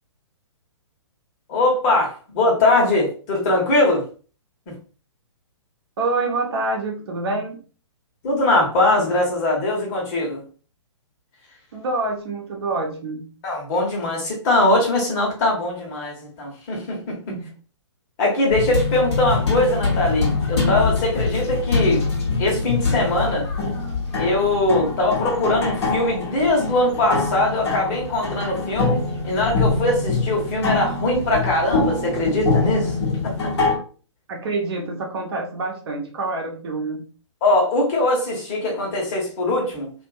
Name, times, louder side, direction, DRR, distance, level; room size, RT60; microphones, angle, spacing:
voice 1, 1.5-4.0 8.2-10.4 13.4-17.3 18.2-22.0 22.4-23.5 24.2-32.9 33.2-33.5 37.4-39.9, left 2 dB, 35° left, -2 dB, 1.1 m, -21 dB
voice 2, 6.0-7.6 11.7-13.2 17.3-17.5 34.3-37.1, right 3 dB, 55° right, 0 dB, 0.8 m, -26 dB
sound 1, 18.5-33.8, left 4 dB, 60° left, 1.0 m, -24 dB
2.5 x 2.5 x 2.4 m, 0.38 s
figure-of-eight pair, 120°, 16 cm